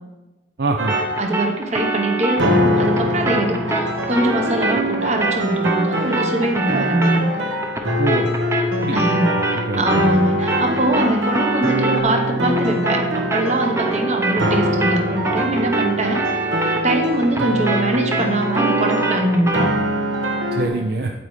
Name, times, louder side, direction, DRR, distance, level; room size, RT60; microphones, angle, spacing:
voice 1, 0.6-0.9 8.0-8.3 8.8-10.0 20.5-21.1, right 2 dB, 55° right, 3 dB, 0.5 m, -24 dB
sound 1, 0.8-20.7, equal, 85° right, 1.2 m, -23 dB
sound 2, 0.9-10.2 10.5-19.8, right 2 dB, 15° right, 0.6 m, -25 dB
voice 2, 1.2-7.5 8.9-16.4 16.8-19.7, right 1 dB, 35° right, 3 dB, 0.9 m, -22 dB
8.8 x 8.3 x 3.2 m, 1.1 s
head